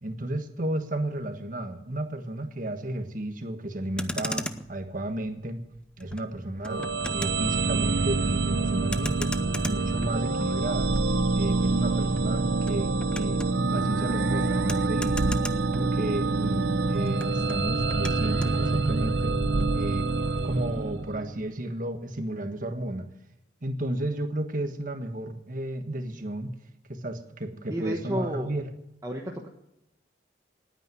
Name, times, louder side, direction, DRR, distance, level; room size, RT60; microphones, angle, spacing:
voice 1, 0.0-5.6 6.0-6.9 7.1-9.3 9.6-10.9 11.3-15.2 15.7-19.4 19.7-20.1 20.4-23.1 23.6-26.6 26.9-28.7, right 1 dB, 45° right, 6 dB, 1.6 m, -33 dB
Motor vehicle (road), 3.8-16.4 16.7-18.6, left 1 dB, 5° left, 0.7 m, -39 dB
sound 1, 6.7-21.4, right 3 dB, 80° right, 0.9 m, -26 dB
voice 2, 27.7-28.5 29.0-29.5, equal, 20° right, 1 dB, 1.2 m, -31 dB
19.0 x 9.1 x 7.6 m, 0.83 s
head